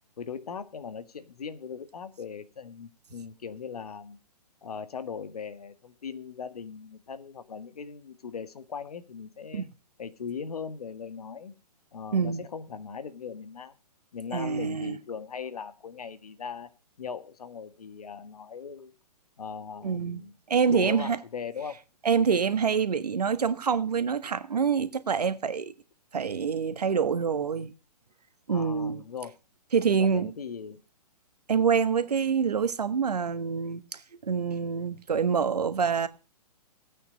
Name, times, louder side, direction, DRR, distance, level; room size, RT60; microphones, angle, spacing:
voice 1, 0.2-4.2 4.6-9.7 10.0-11.5 11.9-13.8 14.1-16.7 17.0-18.9 19.4-20.3 20.7-21.8 28.5-29.3 29.9-30.8, left 6 dB, 65° left, 1.8 m, -39 dB
voice 2, 12.1-12.4 14.3-15.0 19.8-20.2 20.5-21.2 22.0-25.7 26.1-27.7 28.5-29.0 29.7-30.3 31.5-36.1, right 6 dB, 70° right, 1.4 m, -26 dB
17.0 x 8.9 x 5.2 m
figure-of-eight pair, 125°, 21 cm